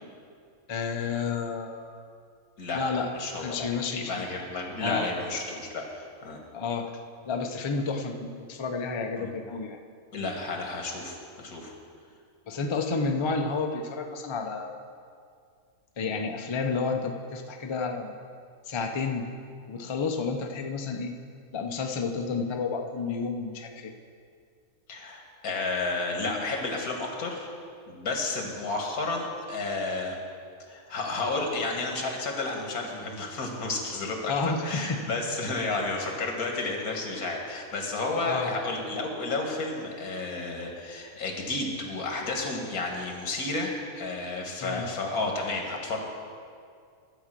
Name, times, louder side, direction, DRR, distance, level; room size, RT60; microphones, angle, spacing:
voice 1, 0.7-2.1 2.7-3.1 3.4-4.2 4.8-5.1 6.5-6.9 7.3-9.8 12.5-14.7 16.0-18.2 18.7-19.3 19.7-21.1 21.5-23.9 34.3-35.1 38.3-38.5 44.6-44.9, left 4 dB, 40° left, 4 dB, 0.4 m, -30 dB
voice 2, 2.6-6.4 9.2-9.3 10.1-11.7 24.9-27.5 27.9-30.2 30.7-34.3 34.6-43.7 44.0-46.0, left 3 dB, 85° left, 1 dB, 1.9 m, -32 dB
12.0 x 5.0 x 7.5 m, 2.3 s
omnidirectional pair, 1.5 m